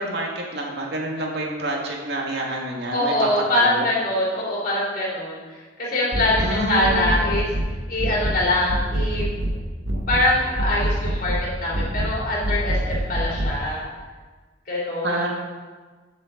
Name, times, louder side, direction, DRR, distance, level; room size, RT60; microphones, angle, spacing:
voice 1, 0.0-3.9 6.4-7.2 15.0-15.3, right 1 dB, 60° right, -1 dB, 2.1 m, -28 dB
voice 2, 2.9-5.4 5.8-7.5 7.9-9.3 10.1-13.9 14.7-15.2, left 1 dB, 50° left, -6 dB, 3.8 m, -23 dB
sound 1, 6.1-6.5 6.8-7.7 8.0-8.4 8.7-9.6 9.9-10.3 10.6-11.4 11.7-12.1 12.4-13.5, right 1 dB, 75° right, 1.5 m, -24 dB
14.5 x 7.4 x 3.9 m, 1.4 s
head